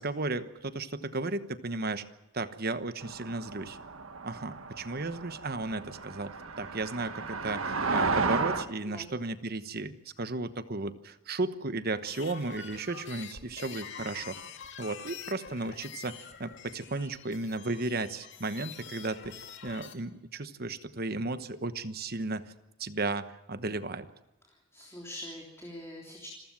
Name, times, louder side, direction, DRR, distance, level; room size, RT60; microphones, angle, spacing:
voice 1, 0.0-2.0 2.3-3.8 4.2-14.4 14.8-22.5 22.8-24.1, right 3 dB, 45° right, 11 dB, 1.1 m, -34 dB
sound 1, 3.0-8.6, right 4 dB, 75° right, 1.6 m, -33 dB
sound 2, 11.9-19.9, left 7 dB, 55° left, 2.2 m, -46 dB
voice 2, 24.5-26.3, left 1 dB, 15° left, -1 dB, 3.5 m, -44 dB
27.5 x 15.0 x 7.6 m, 1.0 s
head